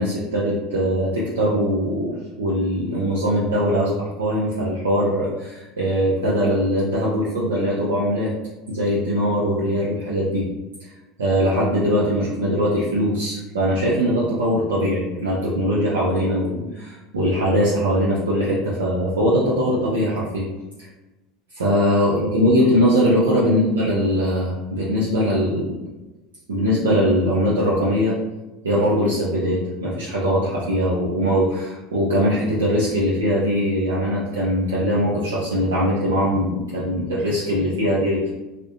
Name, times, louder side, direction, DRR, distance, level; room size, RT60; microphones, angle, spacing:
voice 1, 0.0-8.3 8.7-10.5 10.8-10.9 11.2-20.5 20.8-20.9 21.5-25.8 26.5-28.2 28.6-38.3, equal, 80° right, -7 dB, 0.5 m, -21 dB
2.5 x 2.1 x 2.6 m, 1.1 s
figure-of-eight pair, 75°, 0 cm